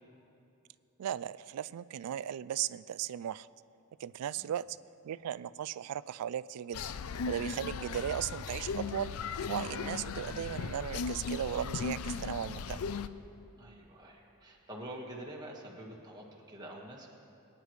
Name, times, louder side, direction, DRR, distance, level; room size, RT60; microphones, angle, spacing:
voice 1, 1.0-3.5 4.0-4.8 5.0-6.8 7.3-9.1 9.5-12.8, right 10 dB, 85° right, 17 dB, 0.3 m, -36 dB
sound 1, 6.7-13.1, left 5 dB, 70° left, 0.4 m, -37 dB
voice 2, 13.6-17.1, right 1 dB, 20° right, -2 dB, 1.6 m, -46 dB
23.0 x 9.8 x 3.2 m, 2.8 s
head